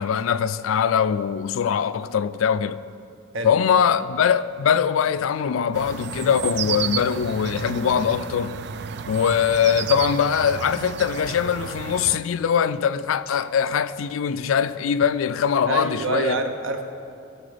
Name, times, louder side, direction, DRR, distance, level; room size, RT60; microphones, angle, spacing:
voice 1, 0.0-2.8 3.4-8.6 9.1-16.4, left 7 dB, 90° left, 0.4 m, -22 dB
sound 1, 5.7-12.2, right 7 dB, 55° right, 0.4 m, -32 dB
voice 2, 15.7-16.8, right 3 dB, 80° right, 1.0 m, -26 dB
16.5 x 6.9 x 5.0 m
head